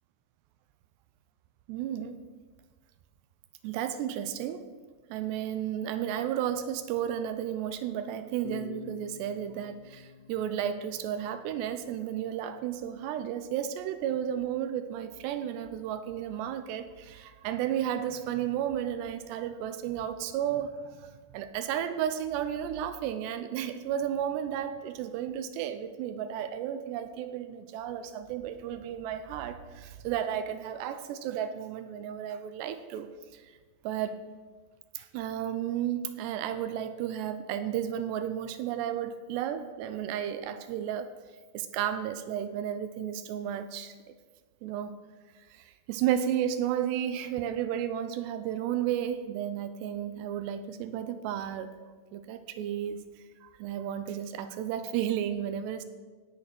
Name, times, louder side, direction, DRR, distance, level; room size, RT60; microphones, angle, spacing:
voice 1, 1.7-2.2 3.6-4.7 5.1-20.8 21.3-33.1 33.8-34.2 35.0-41.1 41.5-43.9 44.6-44.9 45.5-51.7 52.1-53.0 53.4-55.8, right 10 dB, 85° right, 10 dB, 2.8 m, -33 dB
sound 1, 8.4-11.9, left 5 dB, 75° left, 2.5 m, -47 dB
17.5 x 6.5 x 6.0 m, 1.4 s
omnidirectional pair, 5.0 m